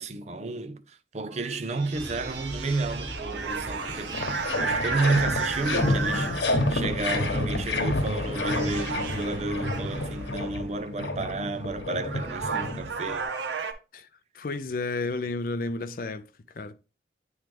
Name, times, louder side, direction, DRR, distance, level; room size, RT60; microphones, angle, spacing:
voice 1, 0.0-4.2 4.6-13.3, right 3 dB, 40° right, 0.5 m, -31 dB
sound 1, 1.3-6.9 7.8-8.0 8.3-10.2 11.6-11.7 12.0-13.7, right 4 dB, 85° right, 0.8 m, -33 dB
sound 2, 1.9-10.5, left 1 dB, 20° right, 2.4 m, -39 dB
sound 3, 3.5-3.6 3.8-13.2, left 1 dB, 80° left, 1.1 m, -29 dB
voice 2, 14.3-16.3 16.5-16.8, left 3 dB, 50° left, 0.5 m, -31 dB
8.8 x 3.2 x 3.3 m
head